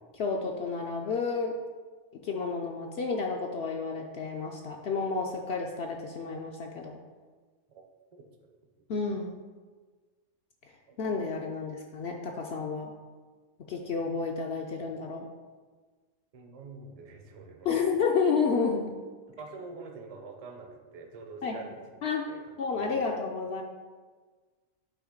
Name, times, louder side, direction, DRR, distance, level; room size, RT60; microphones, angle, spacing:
voice 1, 0.2-1.6 2.1-7.0 8.9-9.4 11.0-12.9 13.7-15.3 17.6-19.0 21.4-21.6 22.0-22.3 22.6-23.6, left 5 dB, 60° left, 1 dB, 0.8 m, -30 dB
voice 2, 8.1-8.5 10.9-11.0 16.3-18.0 19.3-21.9 22.3-23.1, right 4 dB, 35° right, 3 dB, 0.6 m, -46 dB
8.6 x 3.0 x 5.0 m, 1.4 s
omnidirectional pair, 1.4 m